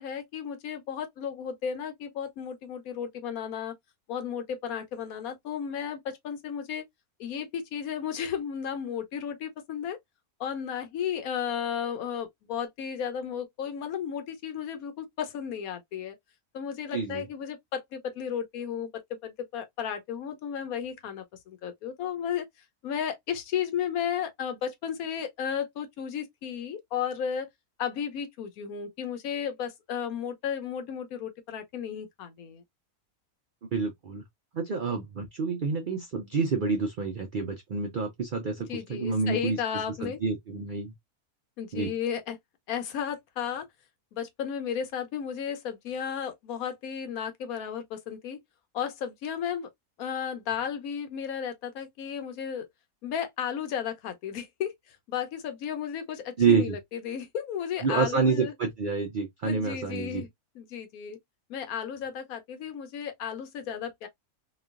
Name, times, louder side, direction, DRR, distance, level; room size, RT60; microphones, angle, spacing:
voice 1, 0.0-3.7 4.1-6.8 7.2-10.0 10.4-16.1 16.5-22.5 22.8-27.5 27.8-32.6 38.7-40.2 41.6-42.4 42.7-43.7 44.1-48.4 48.7-49.7 50.0-52.7 53.0-58.5 59.4-60.3 60.6-61.2 61.5-64.1, left 8 dB, 75° left, 1.1 m, -34 dB
voice 2, 16.9-17.2 33.7-34.2 34.5-39.6 40.0-40.9 41.7-41.9 56.4-56.8 57.8-60.2, right 5 dB, 70° right, 0.4 m, -28 dB
3.0 x 2.3 x 2.3 m
omnidirectional pair, 1.6 m